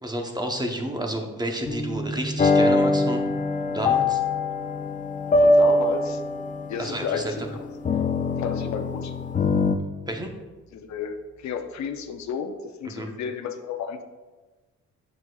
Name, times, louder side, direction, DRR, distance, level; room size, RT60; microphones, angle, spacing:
voice 1, 0.0-3.2 3.7-4.2 6.8-7.3 10.1-10.3 12.8-13.1, right 1 dB, 15° right, 3 dB, 0.8 m, -30 dB
sound 1, 1.7-8.1, right 1 dB, 10° left, 1.2 m, -38 dB
sound 2, 2.4-9.7, left 2 dB, 25° left, 0.4 m, -23 dB
voice 2, 5.4-6.2 6.7-7.6 8.4-9.1 10.7-14.0, left 6 dB, 65° left, 6 dB, 0.7 m, -32 dB
7.1 x 6.3 x 2.4 m, 1.3 s
cardioid pair, 90°, 30 cm